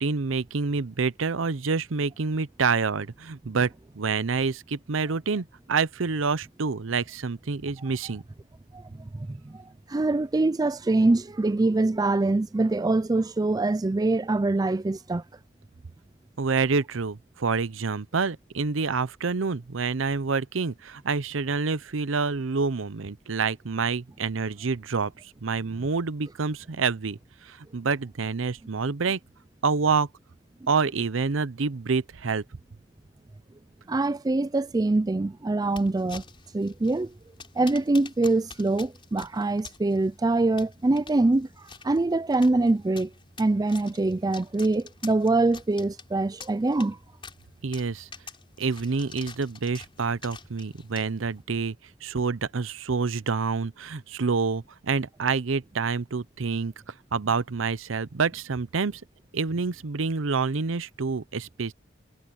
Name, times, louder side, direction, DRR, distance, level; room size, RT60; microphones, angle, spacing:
voice 1, 0.0-8.2 16.4-25.1 25.4-27.2 27.4-29.2 29.6-30.1 30.7-32.4 47.6-48.1 48.6-51.7 52.0-56.7 57.1-59.0 59.3-61.7, right 4 dB, 85° right, 0.7 m, -27 dB
voice 2, 9.9-15.2 33.9-36.2 36.5-37.1 37.6-41.5 41.8-43.1 43.4-47.0, right 2 dB, 20° right, 0.4 m, -24 dB
sound 1, 35.6-51.4, left 5 dB, 25° left, 4.3 m, -48 dB
head